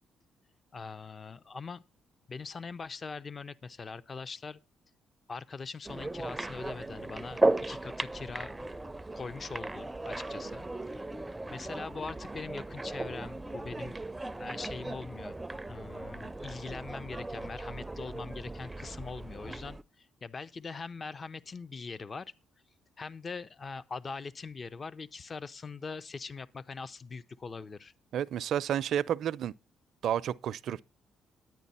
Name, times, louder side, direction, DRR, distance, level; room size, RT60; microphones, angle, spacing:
voice 1, 0.7-1.8 2.3-4.6 5.3-8.7 9.1-11.1 11.5-13.9 14.4-15.4 15.7-22.3 23.0-27.9, left 4 dB, 35° left, 0.6 m, -42 dB
sound 1, 5.9-19.8, right 2 dB, 15° right, 0.5 m, -36 dB
voice 2, 28.1-29.5 30.0-30.8, right 10 dB, 70° right, 0.5 m, -31 dB
10.5 x 9.4 x 4.2 m
cardioid pair, 90°, 0 cm